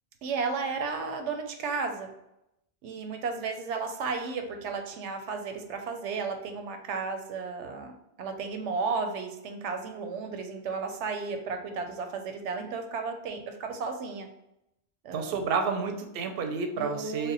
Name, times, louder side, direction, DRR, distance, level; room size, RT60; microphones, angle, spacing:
voice 1, 0.2-2.1 2.8-14.3 15.0-15.4 16.8-17.3, right 4 dB, 90° right, 5 dB, 0.9 m, -33 dB
voice 2, 15.1-17.3, right 5 dB, 65° right, 5 dB, 0.7 m, -30 dB
3.4 x 2.1 x 3.9 m, 0.83 s
omnidirectional pair, 1.2 m